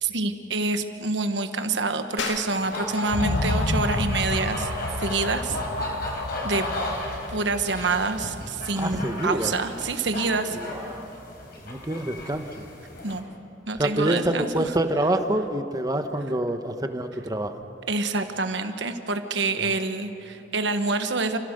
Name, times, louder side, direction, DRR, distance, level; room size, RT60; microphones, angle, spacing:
voice 1, 0.0-4.7 5.0-5.6 6.4-6.7 7.3-10.6 13.0-13.3 13.7-14.6 17.9-21.4, right 3 dB, 65° right, 8 dB, 1.3 m, -27 dB
sound 1, 2.2-12.4, left 4 dB, 75° left, 1.9 m, -43 dB
sound 2, 2.6-13.2, left 1 dB, 55° left, 4.0 m, -34 dB
sound 3, 3.1-11.0 11.4-11.5, left 2 dB, 35° left, 0.6 m, -32 dB
voice 2, 8.8-9.9 10.5-11.1 11.6-12.7 13.8-17.5, right 1 dB, 20° right, 7 dB, 1.0 m, -27 dB
29.5 x 15.0 x 6.7 m, 2.9 s
head